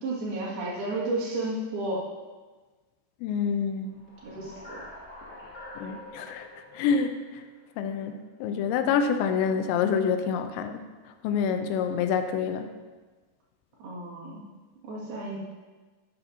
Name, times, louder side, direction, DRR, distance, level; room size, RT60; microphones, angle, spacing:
voice 1, 0.0-2.1 4.2-4.8 13.8-14.5 14.8-15.4, right 2 dB, 60° right, -6 dB, 3.7 m, -32 dB
voice 2, 3.2-4.0 5.8-6.5 6.7-7.2 7.8-10.8 11.2-12.7, left 6 dB, 90° left, 8 dB, 3.0 m, -27 dB
sound 1, 3.9-8.2, left 1 dB, 40° left, 1.4 m, -46 dB
13.0 x 9.7 x 2.8 m, 1.3 s
omnidirectional pair, 5.1 m